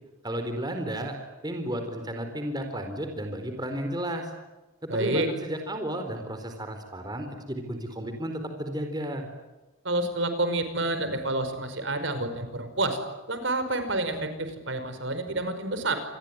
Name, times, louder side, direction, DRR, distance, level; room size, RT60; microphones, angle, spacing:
voice 1, 0.2-1.2 1.4-4.3 4.9-9.3, right 1 dB, 20° right, 5 dB, 4.1 m, -33 dB
voice 2, 4.9-5.3 9.9-13.0 13.3-16.0, right 2 dB, 65° right, 9 dB, 5.2 m, -28 dB
28.0 x 21.5 x 9.8 m, 1.1 s
head